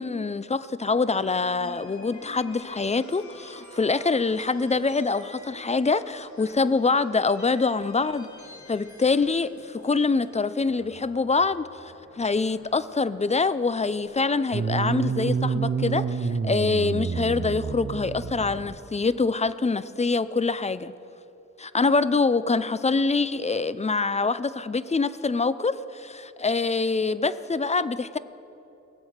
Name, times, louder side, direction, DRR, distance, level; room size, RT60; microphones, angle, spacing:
voice 1, 0.0-8.3 8.7-20.9 21.6-28.2, left 4 dB, 25° left, 15 dB, 0.5 m, -25 dB
sound 1, 0.8-17.0, left 2 dB, 70° left, 2.4 m, -49 dB
sound 2, 14.5-18.8, right 5 dB, 45° right, 0.7 m, -28 dB
18.5 x 7.8 x 6.5 m, 2.9 s
cardioid pair, 60°, 30 cm